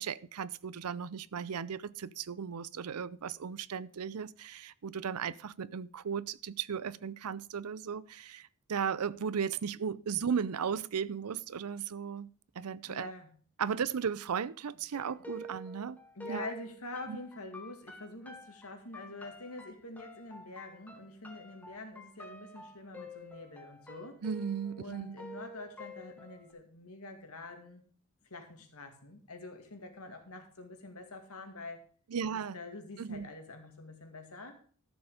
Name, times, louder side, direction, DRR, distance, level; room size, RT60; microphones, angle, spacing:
voice 1, 0.0-12.3 12.6-13.1 13.6-16.0 16.3-16.5 17.1-17.2 24.2-25.2 32.1-32.6 33.0-33.3, right 7 dB, 90° right, 0.5 m, -36 dB
voice 2, 12.8-13.3 15.8-24.2 24.7-27.8 28.3-31.8 32.3-34.6, left 2 dB, 80° left, 2.4 m, -46 dB
sound 1, 14.9-26.5, equal, 5° left, 1.5 m, -49 dB
13.0 x 7.3 x 5.0 m
head